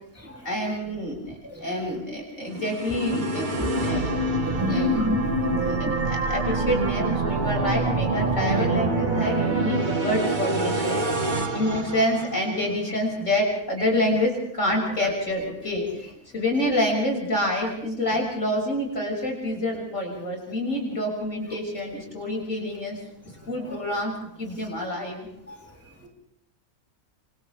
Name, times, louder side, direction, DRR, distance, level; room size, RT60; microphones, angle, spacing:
voice 1, 0.4-4.3 4.7-5.0 5.4-16.1 16.3-23.0 23.5-24.1 24.4-25.3 26.0-26.1, left 1 dB, 60° left, 0 dB, 6.7 m, -27 dB
sound 1, 2.5-12.7, right 2 dB, 35° right, 1.5 m, -26 dB
voice 2, 4.4-5.2 25.5-25.6, equal, 10° right, -1 dB, 2.9 m, -28 dB
29.0 x 26.0 x 3.5 m, 0.75 s
omnidirectional pair, 1.5 m